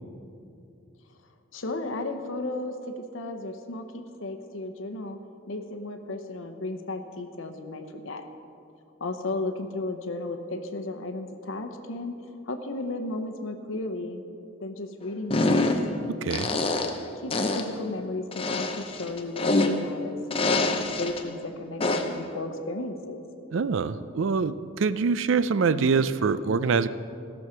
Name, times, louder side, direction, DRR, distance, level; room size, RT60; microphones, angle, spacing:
voice 1, 1.5-5.2 5.5-8.2 9.0-12.2 12.4-14.3 14.6-15.7 17.1-23.2, left 2 dB, 70° left, 6 dB, 0.8 m, -34 dB
sound 1, 15.3-16.0 16.3-17.0 17.3-17.7 18.3-20.0 20.3-21.2 21.8-22.2, left 2 dB, 25° left, 0.6 m, -25 dB
voice 2, 16.2-16.5 23.5-26.9, right 5 dB, 65° right, 14 dB, 0.4 m, -24 dB
16.0 x 6.4 x 5.8 m, 2.7 s
head